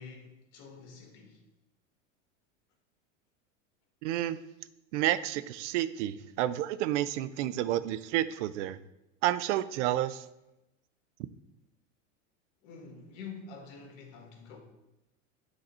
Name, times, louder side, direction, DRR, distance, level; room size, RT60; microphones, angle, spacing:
voice 1, 0.0-1.4 12.6-14.6, left 5 dB, 60° left, 1.8 m, -47 dB
voice 2, 4.0-4.4 4.9-8.8 9.2-10.2, right 13 dB, 70° right, 0.5 m, -30 dB
7.9 x 4.0 x 4.2 m
hypercardioid pair, 105°, 38 cm